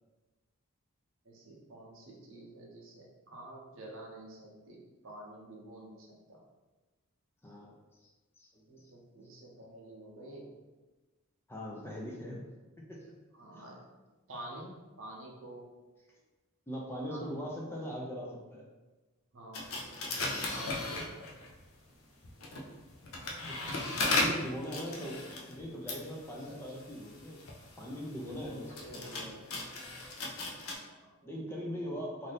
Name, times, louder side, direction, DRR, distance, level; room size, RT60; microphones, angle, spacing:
voice 1, 1.2-6.4 8.7-10.5 13.3-13.8 14.3-15.7 17.1-17.4 19.3-20.0 20.5-21.2 26.2-26.6 28.4-29.5 30.9-32.0, right 1 dB, 60° right, -2 dB, 0.7 m, -49 dB
voice 2, 7.4-7.8 8.0-8.1 8.4-8.6 11.5-12.5 12.8-13.1 13.5-13.6 16.7-18.7 23.4-23.6 24.0-27.4 27.8-29.0 31.2-32.3, equal, 10° left, -3 dB, 0.4 m, -40 dB
Car Cassette Deck Mechanics, 19.5-21.6 22.2-30.7, left 2 dB, 65° left, 0.5 m, -37 dB
2.6 x 2.5 x 3.3 m, 1.2 s
head